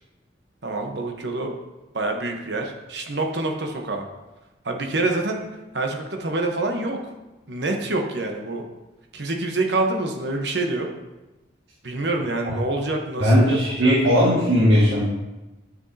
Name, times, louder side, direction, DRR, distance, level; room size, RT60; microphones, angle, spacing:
voice 1, 0.6-1.5 1.9-4.1 4.6-5.4 5.7-7.1 7.5-8.6 9.1-10.9 11.8-14.0, right 2 dB, 65° right, 2 dB, 1.1 m, -26 dB
voice 2, 13.2-15.0, equal, 90° right, -8 dB, 1.8 m, -18 dB
10.5 x 6.2 x 2.8 m, 1.0 s
head